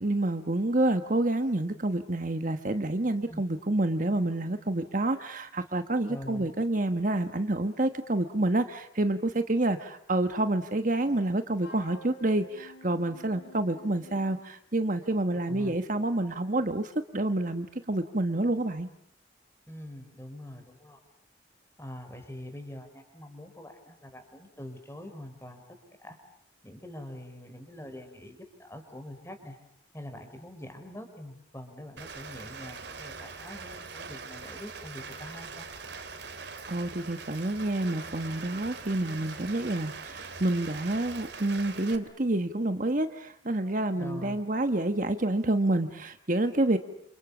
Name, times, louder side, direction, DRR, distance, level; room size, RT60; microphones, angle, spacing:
voice 1, 0.0-18.9 36.4-46.8, right 2 dB, 45° right, 8 dB, 1.3 m, -28 dB
voice 2, 6.1-6.5 15.4-15.7 19.7-21.0 21.8-25.6 26.0-26.2 26.6-29.6 29.9-35.7 43.9-44.4, left 1 dB, 15° left, 6 dB, 5.0 m, -44 dB
Wind instrument woodwind instrument, 11.6-14.5, equal, 65° left, 6.0 m, -50 dB
Rain, 32.0-42.0, right 4 dB, 60° right, 3.2 m, -42 dB
29.0 x 28.5 x 7.2 m, 0.71 s
head